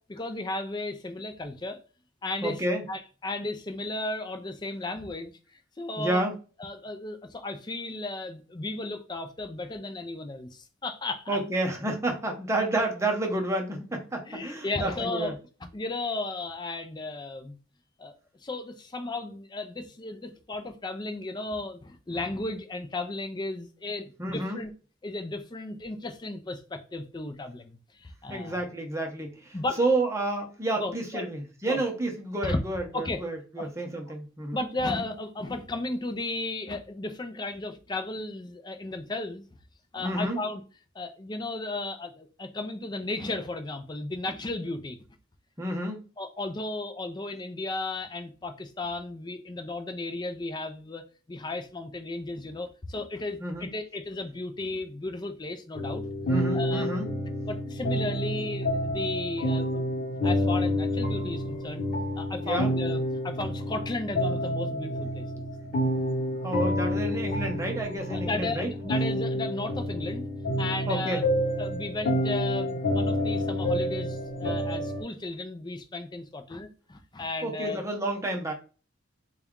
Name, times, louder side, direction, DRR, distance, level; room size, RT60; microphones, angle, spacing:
voice 1, 0.1-1.8 2.2-2.6 2.9-6.2 6.6-11.4 14.3-17.6 18.0-18.1 18.4-24.7 25.0-28.6 29.5-29.8 30.8-31.2 31.7-31.8 32.4-32.6 32.9-33.2 33.6-33.7 34.5-39.4 39.9-40.6 40.9-45.0 46.2-51.0 51.3-56.0 56.5-56.9 57.5-59.8 60.2-61.8 62.2-65.5 68.1-70.3 70.6-71.2 71.6-77.8, left 2 dB, 20° left, 0.4 m, -34 dB
voice 2, 2.4-2.8 6.0-6.3 11.3-15.3 24.2-24.6 28.3-34.6 40.0-40.4 45.6-46.0 53.4-53.7 56.3-57.1 62.4-62.7 66.4-68.9 70.9-71.2 77.4-78.5, right 1 dB, 15° right, 0.7 m, -30 dB
sound 1, 55.7-75.0, equal, 40° left, 1.0 m, -29 dB
4.1 x 2.3 x 3.6 m
head